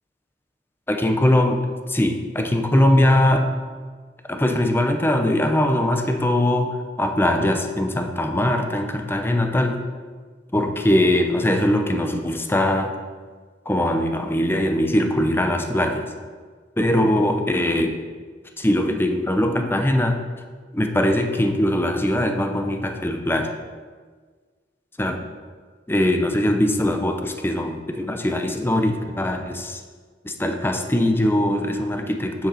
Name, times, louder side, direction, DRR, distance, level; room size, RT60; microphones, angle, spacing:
voice 1, 0.9-3.5 4.3-9.8 10.5-12.9 13.7-16.1 16.8-17.9 18.6-20.2 20.7-23.5 25.0-25.2 25.9-29.8 30.2-32.5, left 1 dB, 10° left, 5 dB, 0.7 m, -21 dB
9.2 x 7.8 x 4.2 m, 1.5 s
head